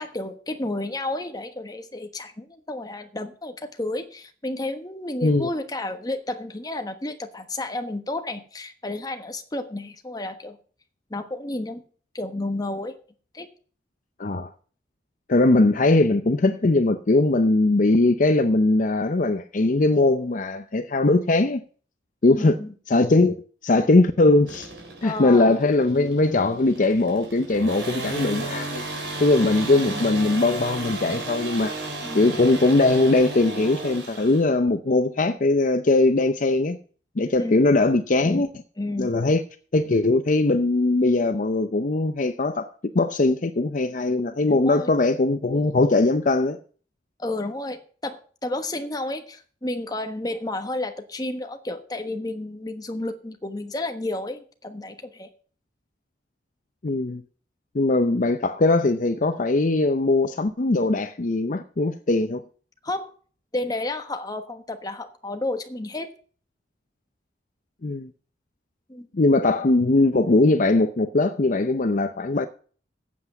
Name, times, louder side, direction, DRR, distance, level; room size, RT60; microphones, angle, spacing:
voice 1, 0.0-10.6 11.1-11.8 12.1-13.0 13.3-13.5 22.2-22.7 25.0-25.6 29.8-30.0 32.0-32.3 37.4-37.6 38.2-38.4 38.8-39.1 44.5-44.9 47.2-55.3 62.8-63.1 63.5-66.1 68.9-69.1, left 2 dB, 20° left, 1.2 m, -31 dB
voice 2, 14.2-14.5 15.3-21.6 22.2-22.6 22.9-23.4 23.6-24.7 25.0-28.8 29.2-31.8 32.1-36.8 37.2-38.5 39.0-39.4 39.7-42.7 42.9-46.6 56.8-57.2 57.7-62.4 67.8-68.1 69.1-72.5, left 2 dB, 45° left, 0.6 m, -20 dB
sound 1, 24.5-34.5, right 2 dB, 85° right, 4.1 m, -34 dB
8.4 x 7.8 x 7.1 m
head